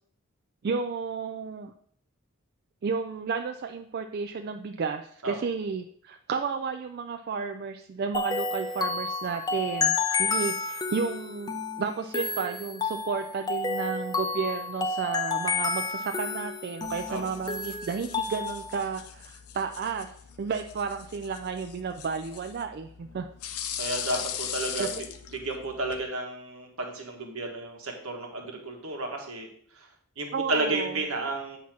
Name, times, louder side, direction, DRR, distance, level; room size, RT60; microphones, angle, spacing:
voice 1, 0.6-1.7 2.8-20.1 20.4-23.3 24.8-25.0 30.3-31.0, right 5 dB, 45° right, 6 dB, 0.3 m, -32 dB
sound 1, 8.1-18.8, left 4 dB, 20° left, 0.5 m, -30 dB
sound 2, 16.8-26.0, left 9 dB, 80° left, 0.6 m, -40 dB
voice 2, 23.8-25.0 25.3-29.5 29.8-29.9 30.2-31.6, right 2 dB, 70° right, 2 dB, 1.4 m, -32 dB
8.2 x 2.9 x 5.9 m, 0.63 s
head